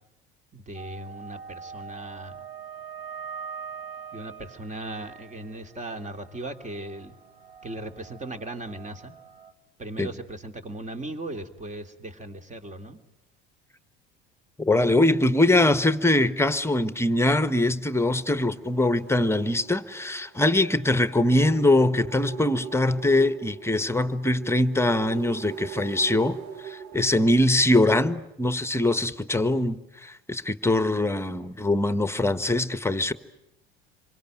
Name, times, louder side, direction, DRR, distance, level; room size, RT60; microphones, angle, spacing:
voice 1, 0.5-2.4 4.1-7.2 7.6-9.1 9.8-13.0, right 1 dB, 25° right, 3.0 m, -38 dB
sound 1, 0.7-9.5, right 6 dB, 85° right, 1.4 m, -43 dB
voice 2, 14.6-26.4 26.6-33.1, left 1 dB, 10° left, 1.4 m, -22 dB
sound 2, 18.2-28.1, right 7 dB, 70° right, 2.1 m, -42 dB
27.5 x 24.0 x 9.1 m
hypercardioid pair, 70°, 29 cm